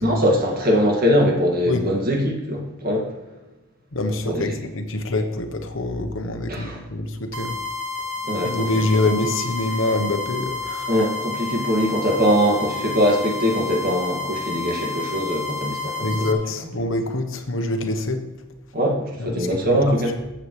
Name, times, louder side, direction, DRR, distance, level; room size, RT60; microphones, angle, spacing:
voice 1, 0.0-3.1 4.3-4.6 6.5-6.8 8.2-8.7 10.9-16.3 18.7-20.2, equal, 45° right, -1 dB, 2.1 m, -22 dB
voice 2, 3.9-7.6 8.4-10.9 16.0-18.2 19.2-19.8, left 2 dB, 70° left, 6 dB, 1.1 m, -25 dB
sound 1, 7.3-16.3, left 4 dB, 90° right, 1.0 m, -30 dB
14.5 x 7.4 x 3.3 m, 1.1 s
head